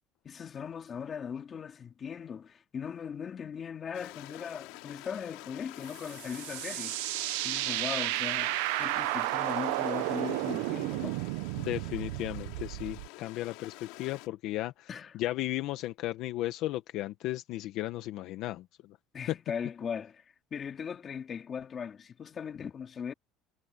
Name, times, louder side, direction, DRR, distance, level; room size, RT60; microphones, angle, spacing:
voice 1, 0.2-7.0 7.4-11.2 14.9-15.1 19.1-20.2 20.5-23.1, left 7 dB, 30° left, 2.8 m, -39 dB
Stream, 3.9-14.3, left 21 dB, 80° left, 2.3 m, -48 dB
sound 1, 5.9-13.1, right 21 dB, 90° right, 0.7 m, -33 dB
voice 2, 11.6-14.9 15.1-18.6, left 16 dB, 55° left, 1.2 m, -35 dB
cardioid pair, 150°, 0 cm